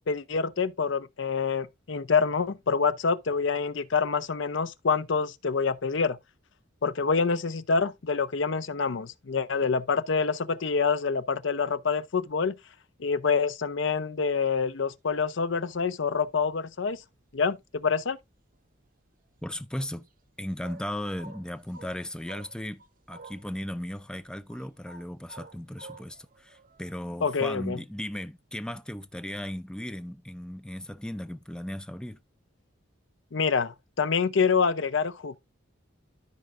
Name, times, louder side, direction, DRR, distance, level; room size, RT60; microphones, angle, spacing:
voice 1, 0.1-6.2 6.8-12.6 13.0-17.0 17.3-18.2 27.2-27.8 33.3-35.4, left 5 dB, 65° left, 0.6 m, -26 dB
sound 1, 14.3-15.3 15.5-17.0 17.3-18.9 19.2-23.5 24.0-27.0, right 3 dB, 40° right, 0.9 m, -51 dB
voice 2, 19.4-20.1 20.4-22.8 23.1-32.2, left 1 dB, 5° left, 0.3 m, -36 dB
13.5 x 4.6 x 2.5 m
head